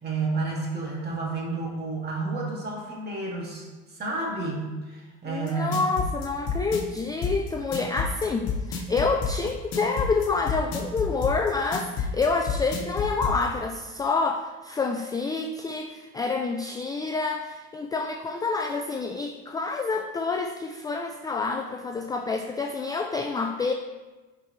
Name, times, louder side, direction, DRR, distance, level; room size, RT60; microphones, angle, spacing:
voice 1, 0.0-5.8, right 3 dB, 35° right, -3 dB, 2.4 m, -31 dB
voice 2, 5.3-23.7, left 4 dB, 15° left, 3 dB, 0.3 m, -28 dB
sound 1, 5.5-13.4, left 6 dB, 65° left, 1.6 m, -29 dB
11.5 x 4.8 x 3.2 m, 1.2 s
cardioid pair, 120°, 30 cm